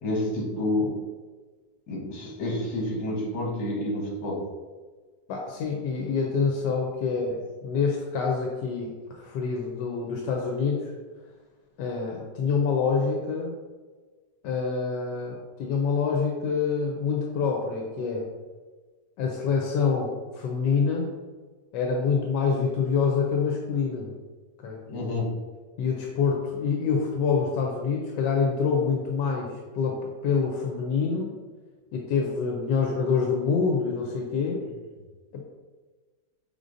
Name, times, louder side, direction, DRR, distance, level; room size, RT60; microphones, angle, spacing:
voice 1, 0.0-1.0 1.9-4.5 24.9-25.3, left 1 dB, 65° left, -2 dB, 1.6 m, -29 dB
voice 2, 5.3-10.9 11.8-13.5 14.4-18.2 19.2-21.1 21.7-24.1 24.6-24.8 25.8-31.3 31.9-34.6 35.3-35.4, left 5 dB, 85° left, 0 dB, 1.2 m, -26 dB
5.2 x 3.7 x 2.5 m, 1.4 s
omnidirectional pair, 1.9 m